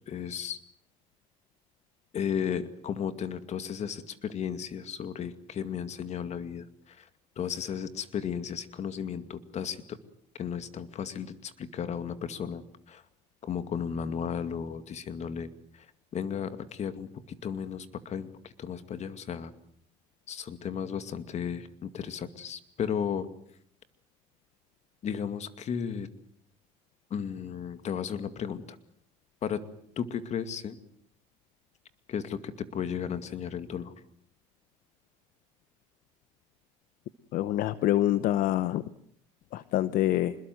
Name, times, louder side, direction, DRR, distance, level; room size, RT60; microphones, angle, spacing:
voice 1, 0.1-0.6 2.1-7.1 7.4-10.0 10.4-12.6 12.9-13.0 13.4-15.5 15.7-15.9 16.1-17.1 17.4-19.5 20.3-23.3 25.0-26.1 27.1-28.8 29.4-29.6 30.0-30.8 32.1-33.9, left 7 dB, 45° left, 11 dB, 2.3 m, -34 dB
voice 2, 37.3-38.8 39.5-40.3, left 13 dB, 70° left, 15 dB, 0.9 m, -26 dB
26.0 x 21.5 x 7.8 m, 0.65 s
supercardioid pair, 95°, 15 cm